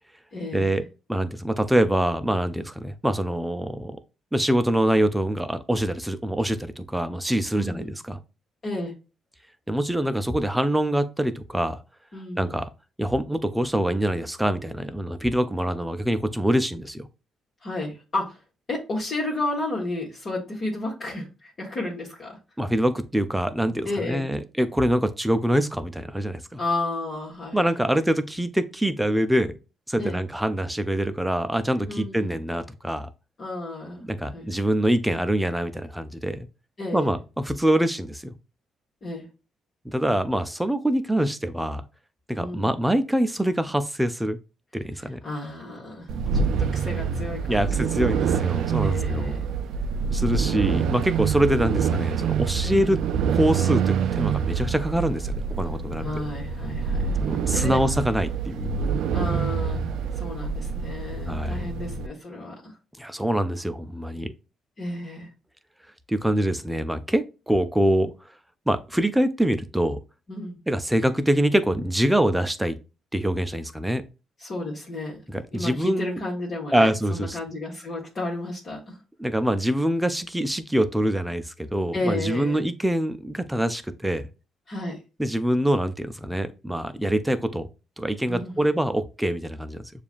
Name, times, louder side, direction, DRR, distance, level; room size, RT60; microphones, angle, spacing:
voice 1, 0.3-0.9 7.5-7.9 8.6-8.9 12.1-12.6 17.6-18.4 18.7-22.4 23.8-24.3 26.6-27.8 30.0-30.2 31.9-32.4 33.4-34.0 34.3-34.5 36.8-37.1 39.0-39.3 42.4-42.8 45.0-48.5 48.8-49.4 52.6-52.9 56.0-57.2 57.5-57.8 59.1-62.7 64.8-65.3 70.3-70.6 74.4-75.2 75.5-79.0 81.9-82.6 84.7-85.0 88.3-88.7, left 2 dB, 45° left, 1.4 m, -32 dB
voice 2, 1.1-4.0 4.3-8.2 9.7-11.8 12.4-12.7 13.0-17.1 22.6-26.6 27.5-29.6 29.9-33.1 34.0-36.5 36.9-37.2 37.4-38.3 39.8-41.8 42.3-44.4 44.7-45.2 47.5-49.3 50.1-53.0 53.3-56.2 57.3-58.7 61.3-61.6 63.0-64.3 66.1-68.1 68.7-70.0 70.7-72.8 73.1-74.0 75.3-76.2 76.7-77.4 79.2-84.3 85.2-87.7 88.0-89.9, right 1 dB, 5° right, 0.5 m, -24 dB
sound 1, 46.1-62.1, right 6 dB, 75° right, 0.3 m, -26 dB
6.8 x 2.5 x 2.4 m
cardioid pair, 90°, 0 cm